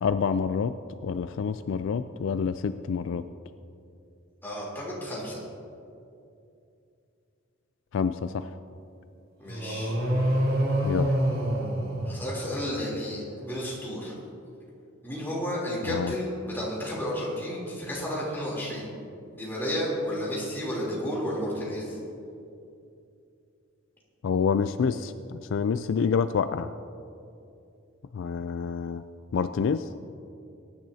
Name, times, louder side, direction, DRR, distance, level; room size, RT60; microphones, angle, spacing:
voice 1, 0.0-0.7 1.0-3.3 7.9-8.5 10.8-11.2 15.8-16.1 24.2-26.7 28.1-29.0 29.3-29.9, left 6 dB, 65° left, 12 dB, 0.3 m, -27 dB
voice 2, 4.4-5.4 9.4-10.0 12.0-14.1 15.0-18.9 19.3-22.0, equal, 10° left, -6 dB, 3.2 m, -32 dB
sound 1, 9.5-12.8, equal, 80° right, 3.3 m, -27 dB
21.0 x 10.5 x 2.8 m, 2.6 s
head